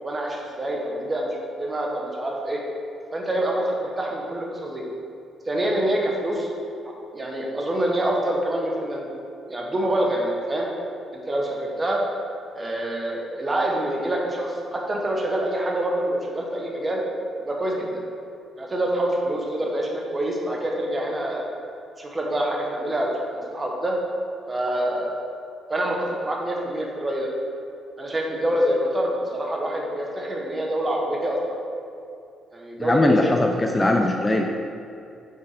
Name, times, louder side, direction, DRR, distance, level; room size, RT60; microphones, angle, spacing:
voice 1, 0.0-2.6 3.1-4.8 5.5-6.5 7.1-9.1 9.5-10.7 11.1-12.0 12.5-17.0 17.4-18.0 18.6-21.4 22.0-24.0 24.5-25.1 25.7-26.0 26.2-27.3 28.0-31.6 32.5-33.2 34.1-34.2, right 1 dB, 25° right, -1 dB, 1.3 m, -26 dB
voice 2, 32.8-34.5, left 1 dB, 20° left, 2 dB, 0.4 m, -20 dB
5.7 x 4.4 x 5.0 m, 2.6 s
cardioid pair, 90°, 0 cm